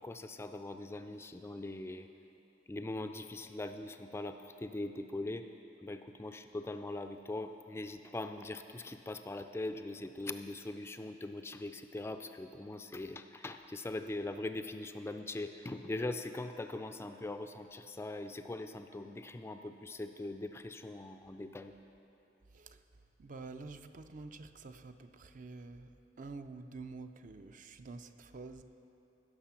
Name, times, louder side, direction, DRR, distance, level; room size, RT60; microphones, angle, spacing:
voice 1, 0.0-2.1 2.7-5.5 5.8-21.8, left 2 dB, 15° left, 8 dB, 0.3 m, -41 dB
voice 2, 23.2-25.9 26.2-28.6, right 3 dB, 45° right, 9 dB, 0.5 m, -48 dB
16.0 x 6.7 x 5.7 m, 2.9 s
head